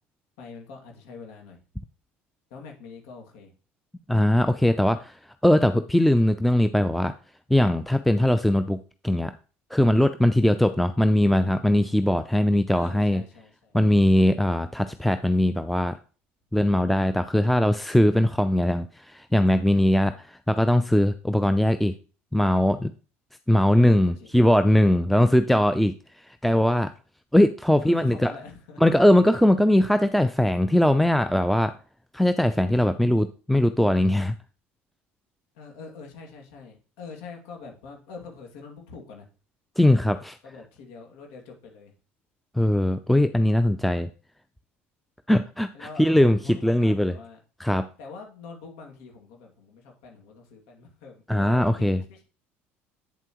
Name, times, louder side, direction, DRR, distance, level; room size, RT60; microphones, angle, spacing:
voice 1, 0.4-1.6 2.5-3.5 4.7-4.9 12.7-13.8 23.7-24.3 27.7-29.0 35.5-39.3 40.4-41.9 45.7-47.4 48.0-52.2, left 4 dB, 75° left, 2 dB, 2.4 m, -44 dB
voice 2, 4.1-5.2 5.4-7.1 7.5-9.3 9.7-13.2 13.7-16.0 16.5-21.9 22.3-22.9 23.5-25.9 26.2-26.9 27.3-28.3 28.8-31.8 32.1-34.4 39.8-40.4 42.5-44.1 45.3-47.1 47.6-47.9 51.3-52.0, left 1 dB, ahead, 10 dB, 0.5 m, -20 dB
8.4 x 7.5 x 3.1 m, 0.36 s
hypercardioid pair, 75°, 6 cm